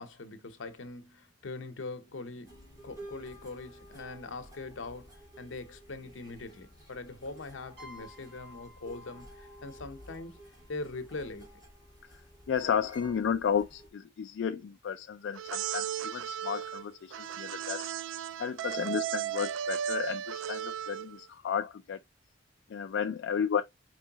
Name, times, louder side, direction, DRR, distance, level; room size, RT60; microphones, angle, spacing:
voice 1, 0.0-10.4 10.7-11.6, left 3 dB, 80° left, 0.7 m, -42 dB
sound 1, 2.4-13.9, right 1 dB, 20° right, 1.8 m, -52 dB
sound 2, 7.8-11.4, left 2 dB, 55° right, 2.6 m, -55 dB
voice 2, 12.5-17.9 18.4-22.0 22.7-23.6, left 7 dB, 65° left, 0.3 m, -33 dB
sound 3, 15.3-21.2, right 9 dB, 80° right, 0.3 m, -35 dB
4.6 x 3.1 x 2.8 m
head